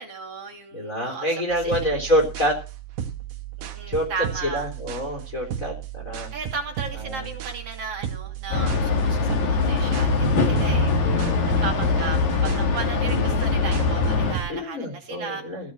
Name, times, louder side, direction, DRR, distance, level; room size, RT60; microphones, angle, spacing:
voice 1, 0.0-1.3 1.6-1.9 3.6-4.7 6.3-11.3 11.6-15.4, right 5 dB, 45° right, 4 dB, 3.5 m, -35 dB
voice 2, 0.7-2.6 3.9-4.1 4.4-6.3 6.9-7.3 11.0-11.5 14.5-15.7, equal, 25° left, 1 dB, 3.5 m, -27 dB
sound 1, 1.5-14.5, right 10 dB, 85° right, 3.2 m, -35 dB
sound 2, 8.5-14.4, left 4 dB, 60° left, 3.0 m, -22 dB
16.0 x 6.3 x 7.7 m, 0.33 s
omnidirectional pair, 4.0 m